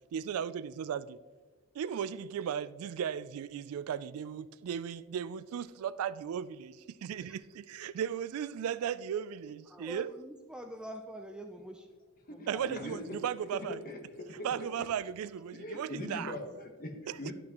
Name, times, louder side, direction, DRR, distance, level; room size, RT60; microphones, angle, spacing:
voice 1, 0.1-1.2 1.8-10.1 12.5-13.8 14.3-16.3 17.1-17.3, right 8 dB, 75° right, 0.3 m, -36 dB
voice 2, 9.7-11.9 12.3-13.0, equal, 5° right, 0.4 m, -46 dB
voice 3, 12.3-13.2 13.7-14.5 15.5-17.3, left 1 dB, 40° left, 1.1 m, -41 dB
11.5 x 6.0 x 2.9 m
head